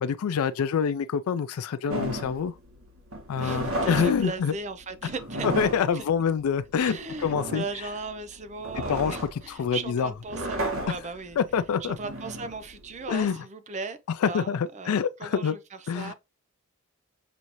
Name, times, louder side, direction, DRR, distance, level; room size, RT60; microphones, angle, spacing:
voice 1, 0.0-2.5 3.3-4.5 5.4-7.6 8.9-10.1 11.4-12.0 13.1-13.4 14.2-15.5 15.9-16.1, left 7 dB, 85° left, 0.4 m, -26 dB
sound 1, 1.9-13.3, right 1 dB, 70° right, 1.4 m, -34 dB
voice 2, 3.4-5.5 5.9-6.1 6.8-11.4 11.8-14.0 14.3-14.5 14.7-15.6 15.9-16.1, right 4 dB, 35° right, 0.5 m, -37 dB
6.1 x 2.7 x 3.0 m
head